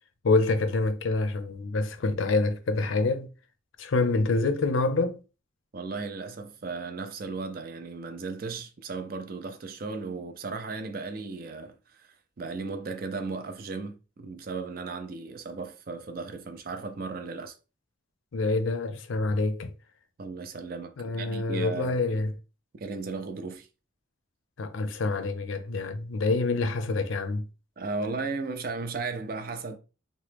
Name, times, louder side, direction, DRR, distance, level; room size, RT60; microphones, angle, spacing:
voice 1, 0.2-3.3 3.8-5.2 18.3-19.7 21.0-22.3 24.6-27.5, left 3 dB, 80° left, 0.5 m, -26 dB
voice 2, 5.7-17.6 20.2-22.0 22.7-23.7 27.8-29.8, right 4 dB, 45° right, 0.4 m, -36 dB
3.0 x 2.1 x 3.3 m
head